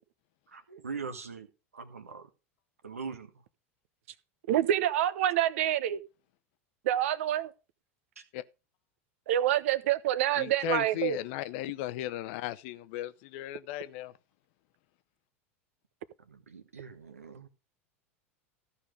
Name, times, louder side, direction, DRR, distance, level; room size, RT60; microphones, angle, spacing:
voice 1, 0.5-1.5 1.7-2.3 2.8-3.3 8.2-8.3 16.2-17.5, right 5 dB, 85° right, 1.4 m, -42 dB
voice 2, 4.5-6.0 6.9-7.5 9.3-11.2, right 12 dB, 65° right, 0.8 m, -27 dB
voice 3, 10.4-14.1, left 15 dB, 60° left, 0.7 m, -36 dB
14.0 x 5.6 x 4.9 m
hypercardioid pair, 85°, 7 cm